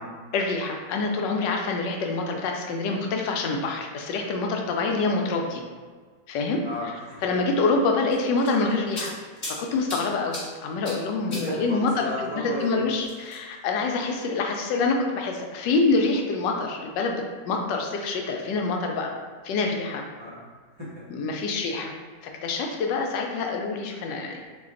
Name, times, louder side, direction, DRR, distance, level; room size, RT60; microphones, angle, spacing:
voice 1, 0.3-5.6 6.3-6.6 7.2-9.2 9.4-19.1 19.4-20.0 21.1-21.9 22.2-24.4, left 3 dB, 85° left, 2 dB, 1.2 m, -26 dB
voice 2, 6.6-7.3 11.2-12.8 20.2-20.3 20.8-21.2, left 1 dB, 25° right, -10 dB, 0.6 m, -34 dB
sound 1, 8.1-9.6 9.9-10.4 10.8-11.0 11.3-11.5 13.0-13.5, left 1 dB, 30° left, 1.0 m, -35 dB
4.1 x 2.2 x 3.7 m, 1.5 s
omnidirectional pair, 1.9 m